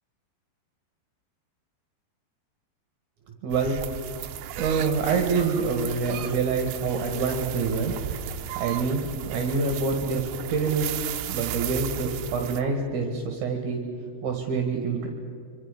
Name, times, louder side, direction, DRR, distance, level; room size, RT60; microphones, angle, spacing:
voice 1, 3.4-3.8 4.6-8.0 8.5-9.0 9.3-10.2 10.5-11.0 11.3-13.9 14.2-15.1, right 4 dB, 55° right, 2 dB, 2.7 m, -26 dB
sound 1, 3.5-12.6, right 11 dB, 75° right, 2.3 m, -35 dB
26.0 x 25.0 x 5.3 m, 2.4 s
omnidirectional pair, 5.3 m